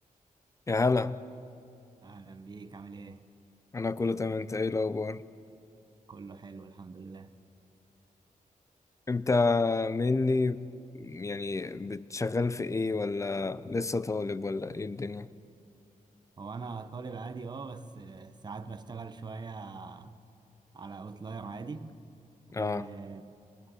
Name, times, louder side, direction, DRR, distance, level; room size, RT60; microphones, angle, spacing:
voice 1, 0.7-1.2 3.7-5.2 9.1-10.7 11.0-15.3 22.5-22.9, left 3 dB, 20° left, 0.4 m, -29 dB
voice 2, 2.0-3.2 6.1-7.3 16.4-20.2 20.7-21.9 22.5-23.3, right 4 dB, 30° right, 0.7 m, -42 dB
22.5 x 19.5 x 6.4 m
wide cardioid pair, 175°, 14 cm